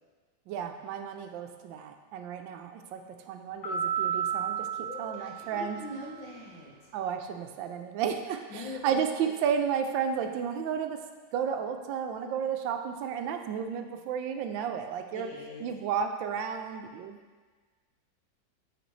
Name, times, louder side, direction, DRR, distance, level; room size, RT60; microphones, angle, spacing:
voice 1, 0.5-3.0 3.3-4.7 5.0-5.8 6.9-11.0 11.3-15.3 15.6-17.2, right 7 dB, 85° right, 6 dB, 1.3 m, -32 dB
sound 1, 3.6-6.2, right 8 dB, 90° left, 1.7 m, -33 dB
voice 2, 4.8-6.9 8.5-9.4 15.1-15.7, left 2 dB, 75° left, -3 dB, 1.8 m, -42 dB
9.0 x 4.3 x 3.1 m, 1.4 s
omnidirectional pair, 2.0 m